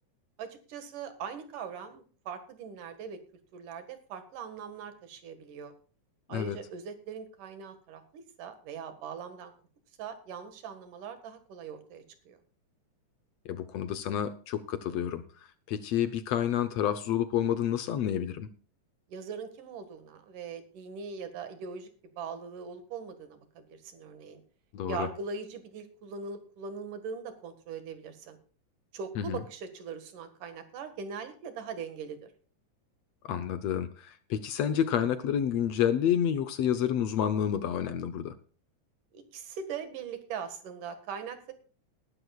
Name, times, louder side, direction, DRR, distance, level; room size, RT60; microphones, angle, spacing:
voice 1, 0.4-3.2 3.5-5.7 6.3-9.5 10.0-12.4 19.1-21.9 22.1-24.4 24.9-28.4 28.9-32.3 39.1-41.5, right 6 dB, 90° right, 9 dB, 3.3 m, -41 dB
voice 2, 13.5-15.2 15.7-18.5 24.7-25.1 29.2-29.4 33.2-38.3, left 9 dB, 70° left, 11 dB, 1.7 m, -29 dB
20.0 x 11.0 x 2.4 m, 0.39 s
omnidirectional pair, 3.5 m